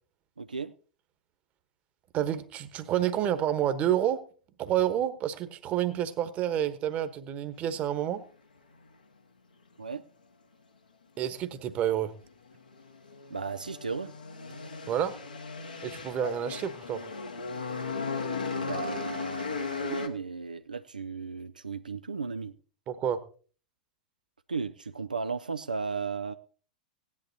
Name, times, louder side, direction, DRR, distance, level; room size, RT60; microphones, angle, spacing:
voice 1, 0.4-0.7 9.8-10.0 13.3-14.1 18.6-22.5 24.5-26.3, right 5 dB, 80° right, 9 dB, 0.5 m, -35 dB
voice 2, 2.1-4.2 4.6-8.2 11.2-12.1 14.9-15.2 15.8-17.0 22.9-23.2, right 10 dB, 30° right, 11 dB, 1.2 m, -29 dB
sound 1, 12.5-20.1, left 4 dB, 80° left, 1.7 m, -36 dB
17.0 x 11.0 x 2.8 m, 0.40 s
figure-of-eight pair, 100°, 5 cm